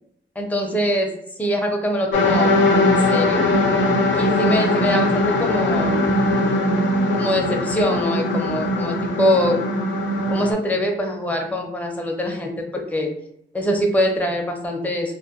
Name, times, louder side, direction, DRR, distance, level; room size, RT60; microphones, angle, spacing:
voice 1, 0.4-1.1 1.4-3.5 4.2-6.1 7.1-9.6 10.3-13.1 13.5-15.1, equal, 5° left, 2 dB, 0.5 m, -23 dB
sound 1, 2.1-10.5, left 1 dB, 65° left, 0.5 m, -20 dB
2.2 x 2.1 x 2.8 m, 0.75 s
cardioid pair, 70°, 20 cm